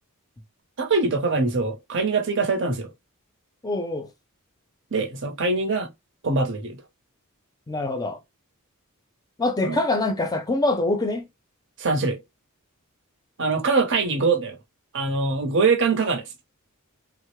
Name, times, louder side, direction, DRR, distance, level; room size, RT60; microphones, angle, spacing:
voice 1, 0.8-2.9 4.9-5.9 6.2-6.8 9.6-9.8 11.8-12.2 13.4-14.6 14.9-16.2, right 3 dB, 55° right, 0.8 m, -23 dB
voice 2, 3.6-4.1 7.7-8.2 9.4-11.3, left 2 dB, 15° left, 0.6 m, -24 dB
3.6 x 2.0 x 3.0 m
head